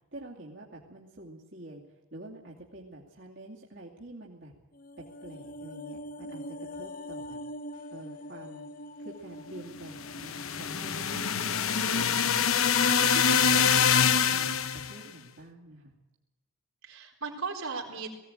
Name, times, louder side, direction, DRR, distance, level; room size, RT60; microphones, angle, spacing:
voice 1, 0.1-1.8 2.1-4.5 5.2-7.4 7.9-8.7 9.0-12.5 13.0-15.9, right 1 dB, 60° right, -4 dB, 2.6 m, -46 dB
sound 1, 4.7-13.2 13.5-13.6, equal, 40° left, 0.8 m, -44 dB
sound 2, 10.0-14.9, left 7 dB, 85° left, 1.0 m, -25 dB
voice 2, 11.7-12.2 16.8-18.1, right 4 dB, 85° right, 0 dB, 3.9 m, -39 dB
19.0 x 16.5 x 9.0 m, 1.1 s
head